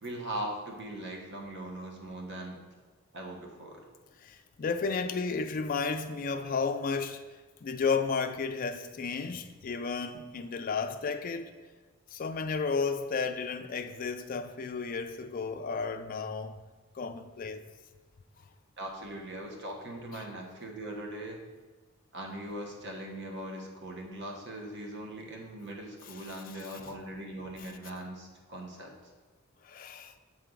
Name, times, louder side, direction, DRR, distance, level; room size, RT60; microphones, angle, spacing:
voice 1, 0.0-2.6 3.1-3.8 18.8-21.4 22.1-28.9, right 1 dB, 55° right, 1.1 m, -40 dB
voice 2, 4.2-7.2 7.6-11.5 12.1-16.6 16.9-17.7 26.8-26.9 29.6-30.1, left 5 dB, 40° left, 0.4 m, -33 dB
7.6 x 4.6 x 3.8 m
head